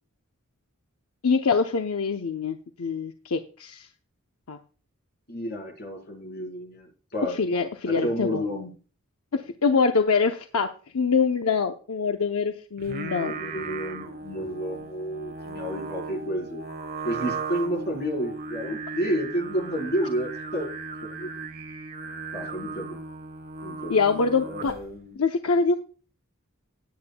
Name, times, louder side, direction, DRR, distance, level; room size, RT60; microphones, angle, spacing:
voice 1, 1.2-3.9 4.5-4.6 7.3-8.4 9.3-10.7 10.9-13.3 23.9-24.7 25.2-25.7, left 4 dB, 80° left, 5 dB, 0.7 m, -24 dB
voice 2, 5.3-7.4 8.0-8.7 13.0-16.6 17.0-20.7 21.0-21.3 22.3-23.0 23.6-24.0 24.4-25.2, equal, 50° left, 1 dB, 4.0 m, -31 dB
Singing, 12.8-25.0, right 4 dB, 45° right, 1.1 m, -37 dB
18.0 x 8.7 x 2.2 m, 0.38 s
head